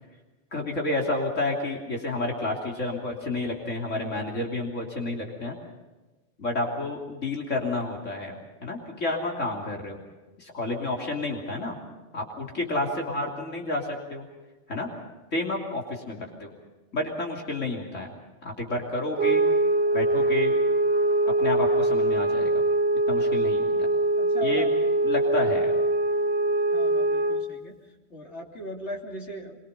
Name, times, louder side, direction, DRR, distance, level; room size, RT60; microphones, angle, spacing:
voice 1, 0.5-5.6 6.4-10.0 10.4-11.8 12.1-14.3 14.7-14.9 15.3-16.5 16.9-19.4 19.9-20.5 21.4-22.6 23.1-23.7 24.4-24.6 25.0-25.7, left 2 dB, 85° left, -1 dB, 3.5 m, -30 dB
sound 1, 19.2-27.5, right 2 dB, 55° right, 1.1 m, -23 dB
voice 2, 24.2-24.7 25.4-25.5 26.7-27.8 28.1-29.6, equal, 65° left, -1 dB, 3.5 m, -38 dB
25.5 x 23.0 x 5.5 m, 1.2 s
omnidirectional pair, 1.3 m